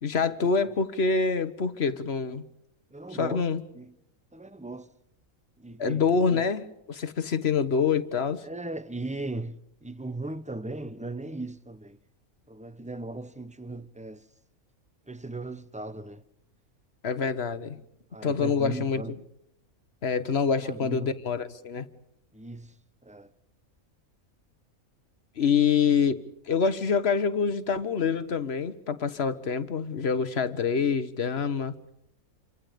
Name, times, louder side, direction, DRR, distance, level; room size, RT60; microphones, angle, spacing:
voice 1, 0.0-2.4 3.1-3.6 5.8-8.4 17.0-17.8 18.2-19.0 20.0-21.9 25.4-31.7, left 5 dB, 50° left, 1.5 m, -26 dB
voice 2, 2.9-3.4 3.7-3.9 4.3-4.9 5.6-6.0 6.3-6.4 8.4-12.0 12.5-14.3 15.1-16.2 18.1-19.1 20.6-21.1 22.3-22.7 23.0-23.3, right 2 dB, 5° right, 0.6 m, -38 dB
29.0 x 25.5 x 5.2 m
omnidirectional pair, 1.5 m